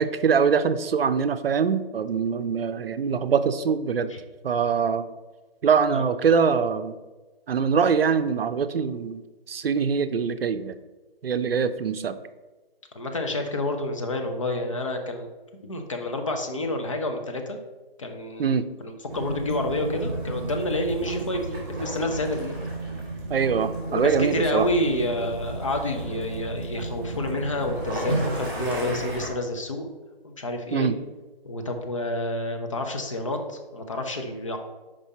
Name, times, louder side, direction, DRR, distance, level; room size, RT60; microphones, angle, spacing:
voice 1, 0.0-4.1 4.4-5.0 5.6-6.9 7.5-9.2 9.5-10.7 11.2-12.2 18.4-18.7 23.3-24.7 30.7-31.0, right 6 dB, 75° right, 11 dB, 0.6 m, -23 dB
voice 2, 12.9-15.3 15.6-17.6 18.0-22.6 23.9-29.9 30.2-30.9 31.4-34.6, left 1 dB, 35° left, 4 dB, 0.6 m, -29 dB
Waves surf / Splash splatter / Trickle dribble, 19.1-29.3, right 2 dB, 20° right, 1.9 m, -32 dB
5.4 x 4.9 x 4.1 m, 1.2 s
hypercardioid pair, 165°, 30 cm